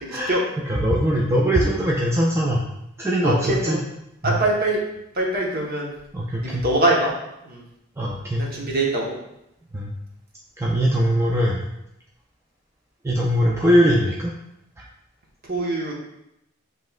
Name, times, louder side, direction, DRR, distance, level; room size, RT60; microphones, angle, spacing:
voice 1, 0.0-0.4 3.2-3.8 4.2-4.8 5.1-5.9 6.4-7.1 7.5-7.6 8.4-9.1 15.5-15.9, right 1 dB, 45° right, -2 dB, 1.0 m, -23 dB
voice 2, 0.7-2.6 3.0-3.8 4.2-4.4 6.1-6.7 8.0-8.5 9.7-9.9 10.6-11.7 13.0-14.3 14.8-14.9, equal, 15° right, -3 dB, 0.4 m, -21 dB
7.4 x 3.1 x 2.3 m, 0.83 s
head